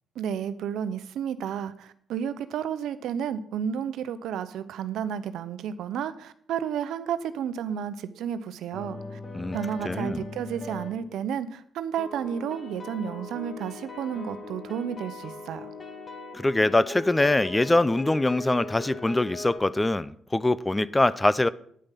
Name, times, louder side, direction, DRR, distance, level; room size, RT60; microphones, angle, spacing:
voice 1, 0.1-9.2 9.5-15.7, right 8 dB, 80° right, 0.8 m, -32 dB
sound 1, 8.7-11.1 12.0-19.6, left 2 dB, 30° left, 2.4 m, -39 dB
voice 2, 9.8-10.2 16.3-21.5, left 2 dB, 15° left, 0.5 m, -23 dB
9.8 x 8.8 x 5.7 m
cardioid pair, 90°, 0 cm